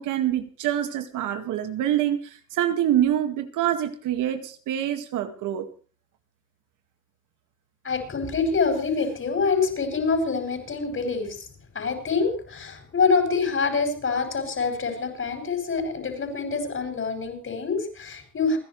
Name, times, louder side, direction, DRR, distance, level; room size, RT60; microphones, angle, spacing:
voice 1, 0.0-5.7, right 11 dB, 90° right, 2.1 m, -26 dB
voice 2, 7.8-11.5 11.7-18.6, left 4 dB, 45° left, 7.4 m, -26 dB
29.0 x 11.0 x 3.3 m
cardioid pair, 90°, 30 cm